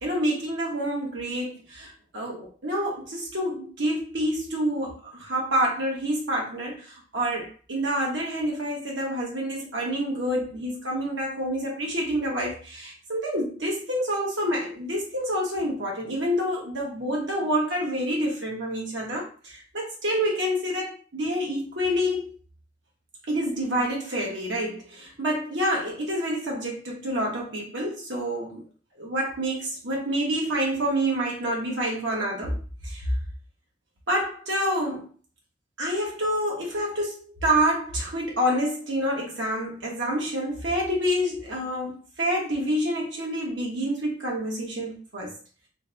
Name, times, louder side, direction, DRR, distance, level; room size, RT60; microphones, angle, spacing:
voice 1, 0.0-22.3 23.3-28.6 29.0-32.5 32.8-33.0 34.1-35.0 35.8-45.3, equal, 80° right, -2 dB, 1.1 m, -28 dB
4.0 x 2.2 x 3.9 m, 0.38 s
head